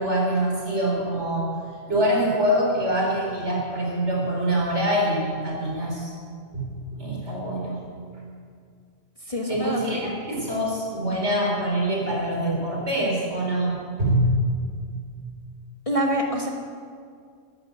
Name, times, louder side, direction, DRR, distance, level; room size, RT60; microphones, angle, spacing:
voice 1, 0.0-1.5 1.8-6.1 6.5-7.8 9.5-13.8 14.1-14.3, right 1 dB, 60° right, -3 dB, 4.5 m, -25 dB
voice 2, 9.2-10.2 11.1-11.2 15.9-16.5, equal, 30° left, 0 dB, 1.3 m, -26 dB
12.0 x 11.5 x 8.1 m, 2.2 s
omnidirectional pair, 1.3 m